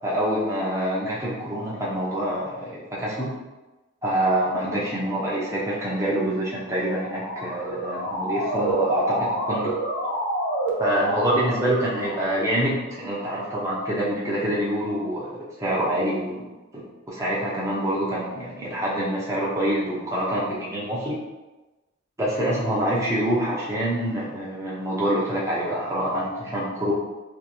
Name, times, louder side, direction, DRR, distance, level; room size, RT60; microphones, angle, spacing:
voice 1, 0.0-3.4 4.0-9.7 10.8-15.3 15.6-16.4 16.7-21.2 22.2-26.9, right 1 dB, 15° right, -7 dB, 0.7 m, -26 dB
Motor vehicle (road) / Siren, 6.7-12.6, right 1 dB, 55° left, 0.7 m, -28 dB
3.5 x 3.0 x 3.0 m, 1.1 s
head